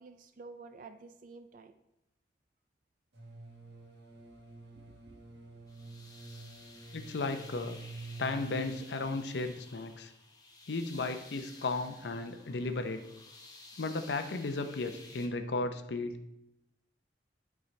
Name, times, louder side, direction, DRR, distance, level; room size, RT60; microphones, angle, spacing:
voice 1, 0.0-1.7 4.7-5.2, right 4 dB, 50° right, 9 dB, 0.3 m, -51 dB
sound 1, 3.1-9.1, right 3 dB, 75° right, 1.6 m, -48 dB
sound 2, 5.7-15.3, left 3 dB, 20° left, 1.0 m, -54 dB
voice 2, 6.9-7.8 8.2-10.1 10.7-13.0 13.8-16.1, left 3 dB, 75° left, 7 dB, 0.6 m, -35 dB
11.0 x 4.6 x 3.2 m, 0.88 s
head